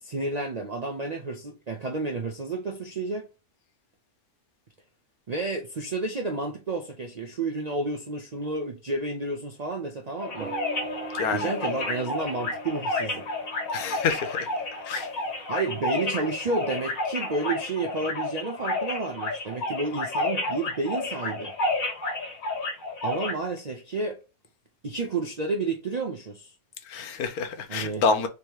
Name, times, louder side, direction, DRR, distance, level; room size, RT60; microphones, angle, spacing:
voice 1, 0.0-3.3 5.3-10.5 11.3-13.3 15.5-21.5 23.0-24.2 24.8-26.5 27.7-28.0, right 3 dB, 75° right, 0.3 m, -31 dB
sound 1, 10.2-23.3, left 2 dB, 70° left, 1.8 m, -31 dB
Guitar, 10.4-15.3, right 6 dB, 30° right, 0.8 m, -43 dB
voice 2, 11.1-11.5 13.7-14.5 14.8-15.1 26.8-28.3, left 5 dB, 90° left, 1.2 m, -27 dB
3.5 x 3.0 x 4.5 m
omnidirectional pair, 1.5 m